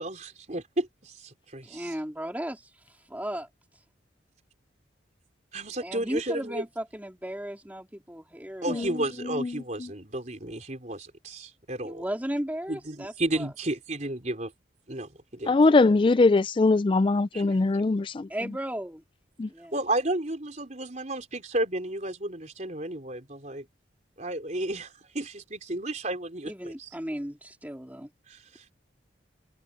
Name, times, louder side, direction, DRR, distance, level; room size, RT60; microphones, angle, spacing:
voice 1, 0.0-2.0 5.5-6.6 8.6-12.0 12.7-14.5 14.9-15.5 17.3-17.4 19.7-23.7 24.2-26.9 28.3-28.7, right 1 dB, 40° right, 4.2 m, -32 dB
voice 2, 1.6-2.7 3.1-3.5 5.8-8.8 11.8-13.5 18.3-19.0 19.5-19.7 26.4-28.1, equal, 10° right, 3.0 m, -35 dB
voice 3, 8.7-9.9 15.5-18.6 19.4-19.5, left 3 dB, 25° left, 0.3 m, -23 dB
head